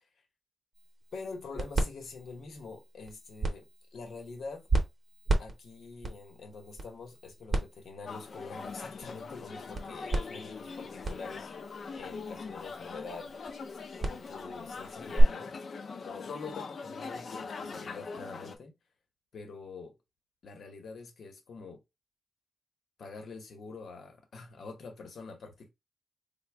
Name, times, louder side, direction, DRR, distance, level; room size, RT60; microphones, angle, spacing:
sound 1, 0.8-15.2, right 2 dB, 40° right, 0.7 m, -35 dB
voice 1, 1.1-4.7 5.4-11.5 11.9-13.4 14.1-15.5 16.0-18.7 19.3-19.9 20.4-21.8 23.0-25.7, left 4 dB, 75° left, 0.9 m, -45 dB
sound 2, 8.1-18.6, left 4 dB, 50° left, 0.4 m, -42 dB
4.1 x 2.2 x 3.3 m
wide cardioid pair, 165°, 0 cm